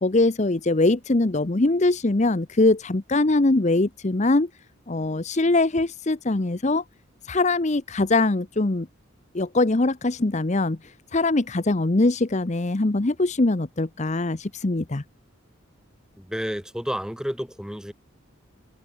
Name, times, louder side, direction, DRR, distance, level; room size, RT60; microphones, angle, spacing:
voice 1, 0.0-4.5 4.9-6.8 7.3-8.9 9.3-10.8 11.1-15.0, left 2 dB, 35° left, 0.8 m, -22 dB
voice 2, 16.2-17.9, equal, 5° right, 2.8 m, -30 dB
head